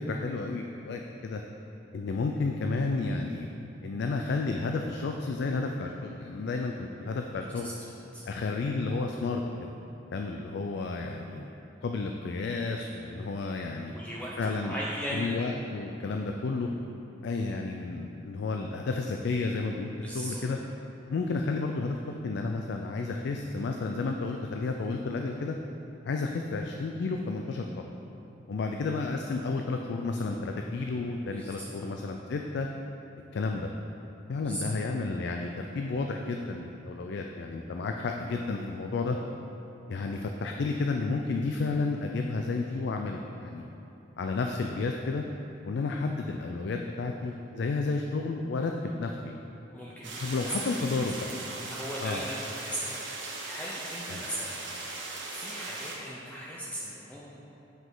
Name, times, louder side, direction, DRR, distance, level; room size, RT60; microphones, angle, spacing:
voice 1, 0.0-1.4 1.9-3.5 3.8-7.7 8.3-9.7 10.1-11.4 11.8-13.9 14.4-14.7 15.1-16.7 17.2-20.6 21.1-22.0 22.2-25.6 26.1-27.7 28.5-32.7 33.3-33.7 34.3-39.2 39.9-43.6 44.2-45.2 45.6-49.4 50.2-51.2 52.0-52.3 54.1-54.2, left 3 dB, 65° left, 3 dB, 0.4 m, -31 dB
voice 2, 13.9-15.4 20.0-20.4 31.1-31.5 31.8-31.9 34.4-34.7 49.7-51.1 51.7-57.4, equal, 10° left, -6 dB, 0.6 m, -38 dB
sound 1, 50.0-56.0, right 3 dB, 90° right, 1.2 m, -39 dB
7.9 x 4.9 x 3.9 m, 3.0 s
head